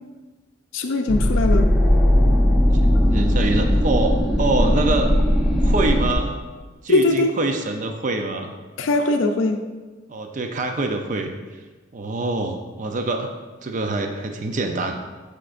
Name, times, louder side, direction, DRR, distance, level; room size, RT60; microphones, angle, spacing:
voice 1, 0.7-1.7 6.9-7.3 8.8-9.6, left 2 dB, 75° left, 4 dB, 0.5 m, -20 dB
sound 1, 1.1-6.1, equal, ahead, 0.8 m, -18 dB
voice 2, 2.7-5.1 5.6-6.4 6.8-8.5 10.1-11.3 11.9-13.3 13.6-14.9, right 2 dB, 40° right, 5 dB, 0.5 m, -25 dB
13.0 x 5.1 x 2.5 m, 1.3 s
head